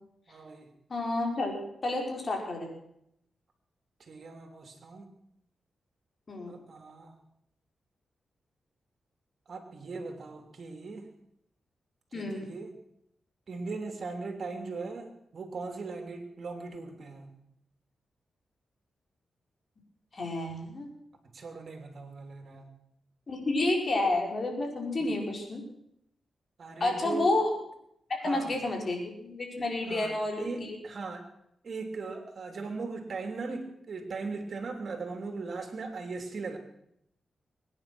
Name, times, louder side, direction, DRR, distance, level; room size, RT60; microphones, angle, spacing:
voice 1, 0.3-0.7 4.0-5.0 6.5-7.1 9.5-11.1 12.1-12.7 13.5-17.3 21.3-22.7 25.3-25.4 26.6-27.3 28.2-28.6 29.9-31.2 31.6-36.6, right 4 dB, 60° right, 5 dB, 3.1 m, -39 dB
voice 2, 0.9-2.7 6.3-6.5 12.1-12.4 20.1-20.9 23.3-25.6 26.8-27.5 28.1-30.8, left 2 dB, 45° left, 1 dB, 4.9 m, -30 dB
22.5 x 10.0 x 6.3 m, 0.76 s
cardioid pair, 80°, 0 cm